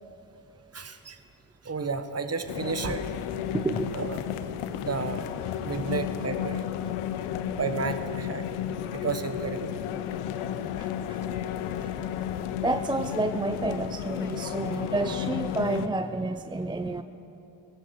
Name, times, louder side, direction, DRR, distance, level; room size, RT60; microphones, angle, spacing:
voice 1, 0.7-1.2 1.6-3.1 3.9-4.2 4.8-5.3 5.6-6.6 7.6-8.4 8.9-9.7, right 4 dB, 30° right, 9 dB, 1.2 m, -31 dB
sound 1, 2.5-15.9, left 10 dB, 90° left, 0.7 m, -33 dB
voice 2, 3.5-3.9 7.2-7.3 10.8-11.2 12.6-17.0, right 2 dB, 10° right, 10 dB, 0.4 m, -30 dB
15.5 x 10.5 x 6.3 m, 2.9 s
supercardioid pair, 55°, 50 cm